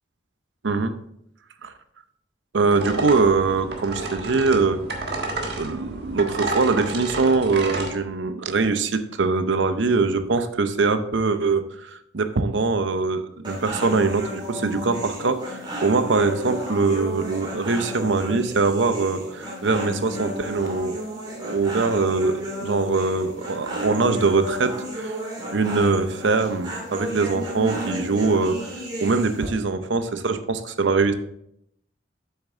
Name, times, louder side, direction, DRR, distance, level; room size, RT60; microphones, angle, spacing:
voice 1, 2.5-4.8 5.4-21.0 21.4-25.1 25.5-28.6 29.0-31.1, right 4 dB, 80° right, 10 dB, 0.7 m, -22 dB
sound 1, 2.7-7.9, right 2 dB, 60° right, 1.5 m, -31 dB
sound 2, 13.4-29.5, equal, 25° right, 2.2 m, -33 dB
8.0 x 6.6 x 3.6 m, 0.75 s
head